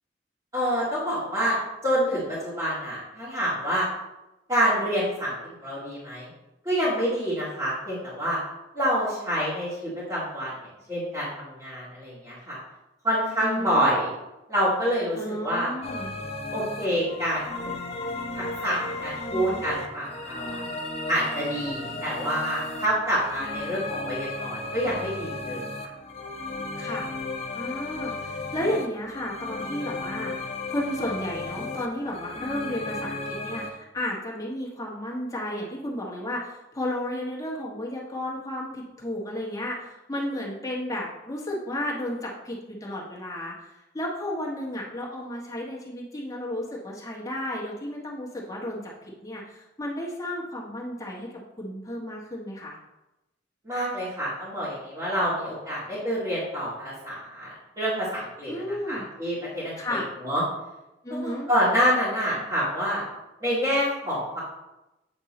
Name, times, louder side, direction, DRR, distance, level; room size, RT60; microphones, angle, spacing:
voice 1, 0.5-1.6 1.8-3.8 4.5-5.3 5.6-6.3 6.6-8.4 8.7-10.5 10.9-12.6 13.0-14.1 14.5-15.7 16.5-17.4 18.3-20.6 21.1-25.7 53.6-60.4 61.1-63.0 63.4-64.4, equal, 20° right, -12 dB, 2.3 m, -27 dB
voice 2, 13.4-13.9 15.2-16.1 19.3-19.6 26.8-27.1 27.5-30.3 30.7-52.8 58.5-59.0 59.8-60.1 61.0-61.5, left 1 dB, 20° left, -4 dB, 1.4 m, -33 dB
sound 1, 15.8-33.7, left 2 dB, 35° left, 0.7 m, -34 dB
8.1 x 3.6 x 4.2 m, 0.97 s
head